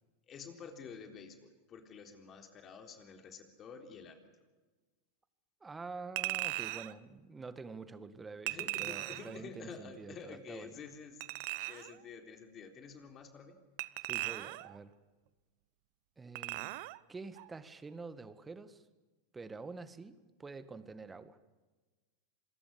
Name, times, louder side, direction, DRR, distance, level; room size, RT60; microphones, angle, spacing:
voice 1, 0.3-4.2 8.5-13.6, left 5 dB, 30° left, 5 dB, 3.7 m, -50 dB
voice 2, 5.6-10.8 14.0-14.9 16.2-16.8 17.1-18.8 19.3-21.4, right 4 dB, 15° right, 13 dB, 1.8 m, -47 dB
Chink clink, 6.2-6.9 8.5-9.4 11.2-12.0 13.8-14.8 16.3-17.0 17.4-17.5, right 21 dB, 60° right, 0.8 m, -38 dB
27.0 x 22.0 x 7.1 m, 1.3 s
hypercardioid pair, 95°, 0 cm